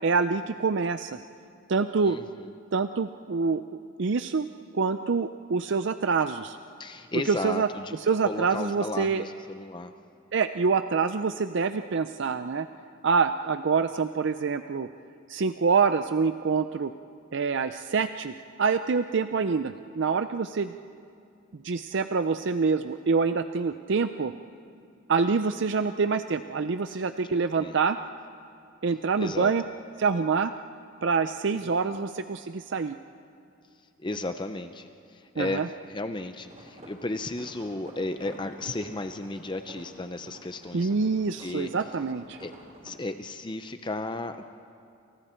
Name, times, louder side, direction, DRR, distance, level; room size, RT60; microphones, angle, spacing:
voice 1, 0.0-1.2 1.7-2.2 2.7-3.6 4.0-4.5 4.7-6.6 7.3-7.7 8.1-9.2 10.3-12.7 13.0-14.9 15.3-16.9 17.3-18.3 18.6-20.8 21.5-24.3 25.1-28.0 28.8-29.6 30.0-30.5 31.0-33.0 35.4-35.7 40.7-42.4, right 5 dB, 60° right, 10 dB, 0.5 m, -26 dB
voice 2, 2.0-2.5 6.8-8.0 8.2-9.9 26.9-27.8 29.1-29.5 31.5-32.0 34.0-35.6 35.9-41.1 41.4-41.7 42.4-42.5 42.8-44.4, left 2 dB, 20° left, 8 dB, 0.6 m, -34 dB
sound 1, 36.4-43.0, equal, 35° right, 3.9 m, -49 dB
29.5 x 28.5 x 4.5 m, 2.5 s
head